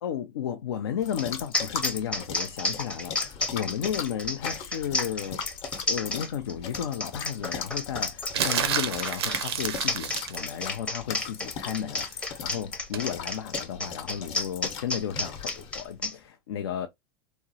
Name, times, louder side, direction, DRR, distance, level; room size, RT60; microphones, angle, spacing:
voice 1, 0.0-16.9, left 9 dB, 85° left, 0.4 m, -33 dB
sound 1, 1.0-15.9, left 7 dB, 50° left, 0.8 m, -39 dB
sound 2, 1.2-1.3 1.5-16.1, left 2 dB, 10° left, 0.5 m, -31 dB
sound 3, 8.3-10.4 12.9-13.1, right 8 dB, 85° right, 0.6 m, -29 dB
3.5 x 2.0 x 2.7 m
hypercardioid pair, 100°, 13 cm